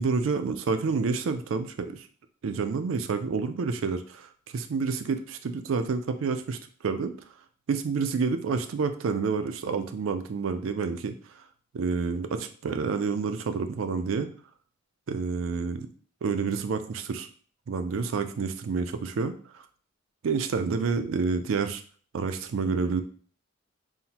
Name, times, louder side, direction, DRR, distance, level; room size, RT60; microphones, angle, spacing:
voice 1, 0.0-2.1 2.4-7.1 7.7-11.4 11.7-14.3 15.1-15.9 16.2-17.3 17.7-19.6 20.2-21.8 22.1-23.0, right 5 dB, 80° right, 8 dB, 0.4 m, -29 dB
5.5 x 2.1 x 2.8 m, 0.44 s
head